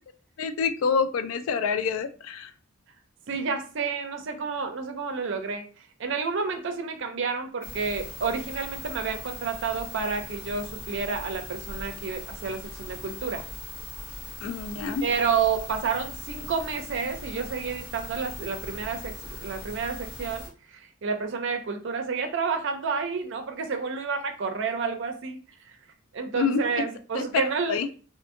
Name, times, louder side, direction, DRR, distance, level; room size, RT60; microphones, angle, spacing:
voice 1, 0.4-2.5 14.4-15.0 26.4-26.6 27.1-27.9, left 5 dB, 75° left, 10 dB, 0.3 m, -27 dB
voice 2, 3.3-13.5 15.0-19.1 19.4-25.4 25.6-25.8 26.1-27.8, right 5 dB, 60° right, 6 dB, 0.5 m, -30 dB
sound 1, 7.6-20.5, left 2 dB, 60° left, 0.7 m, -40 dB
2.6 x 2.6 x 2.5 m, 0.38 s
head